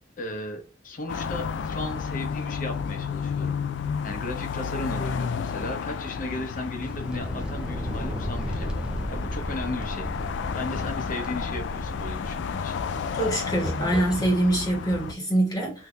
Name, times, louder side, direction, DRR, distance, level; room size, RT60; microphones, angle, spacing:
voice 1, 0.2-3.6 4.0-8.7 9.1-10.1 10.5-12.8, left 2 dB, 45° left, 0.8 m, -35 dB
sound 1, 1.1-15.1, left 6 dB, 65° left, 0.3 m, -32 dB
sound 2, 6.8-14.4, equal, 5° right, 0.4 m, -35 dB
voice 2, 13.2-15.9, right 1 dB, 20° left, 1.1 m, -24 dB
3.5 x 2.7 x 2.4 m
head